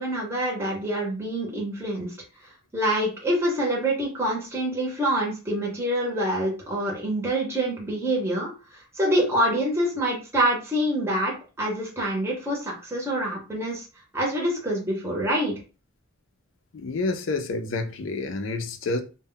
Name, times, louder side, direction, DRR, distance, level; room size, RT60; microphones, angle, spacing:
voice 1, 0.0-2.1 2.7-8.5 8.9-13.8 14.1-15.5, right 1 dB, 10° right, 0.7 m, -26 dB
voice 2, 16.7-19.0, left 3 dB, 65° left, 0.4 m, -28 dB
2.1 x 2.0 x 3.6 m
head